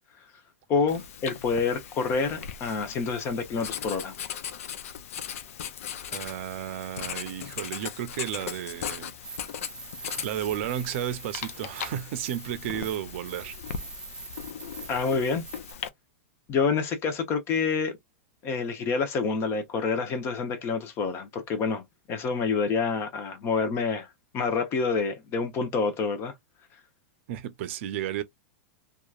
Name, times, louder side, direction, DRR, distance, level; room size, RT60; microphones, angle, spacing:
voice 1, 0.7-4.1 14.9-15.4 16.5-18.0 18.4-21.8 22.1-24.1 24.3-26.3, left 5 dB, 35° left, 0.8 m, -27 dB
Writing, 0.9-15.9, left 8 dB, 75° left, 0.5 m, -38 dB
voice 2, 6.1-9.1 10.0-13.5 27.3-28.2, right 11 dB, 60° right, 0.6 m, -33 dB
sound 1, 9.2-15.7, right 5 dB, 10° right, 0.6 m, -44 dB
2.8 x 2.4 x 2.3 m
hypercardioid pair, 135°, 8 cm